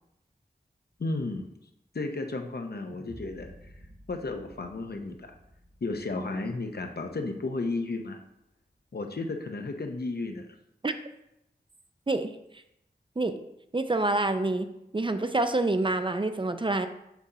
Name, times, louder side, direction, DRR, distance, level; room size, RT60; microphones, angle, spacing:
voice 1, 1.0-1.4 1.9-3.5 4.1-5.3 5.8-8.2 8.9-10.5, left 3 dB, 65° left, 4 dB, 0.7 m, -33 dB
sound 1, 2.8-7.2, equal, 60° right, 1.4 m, -51 dB
voice 2, 13.7-14.7 14.9-16.9, right 2 dB, 30° right, 8 dB, 0.4 m, -27 dB
6.0 x 2.8 x 5.4 m, 0.82 s
wide cardioid pair, 65°, 18 cm